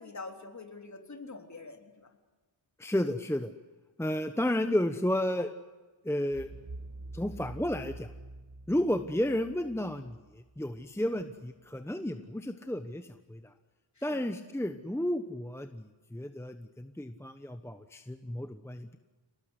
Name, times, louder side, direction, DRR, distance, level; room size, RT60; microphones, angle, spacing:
voice 1, 0.0-2.1 14.0-14.3, left 3 dB, 40° left, 4 dB, 3.6 m, -45 dB
voice 2, 2.8-3.5 4.0-5.5 6.0-6.5 7.1-8.1 8.7-13.5 14.0-19.0, left 1 dB, 5° left, 8 dB, 1.1 m, -32 dB
sound 1, 6.3-11.2, right 2 dB, 35° right, 1.5 m, -47 dB
29.0 x 19.0 x 8.3 m, 1.2 s
wide cardioid pair, 110°, 45 cm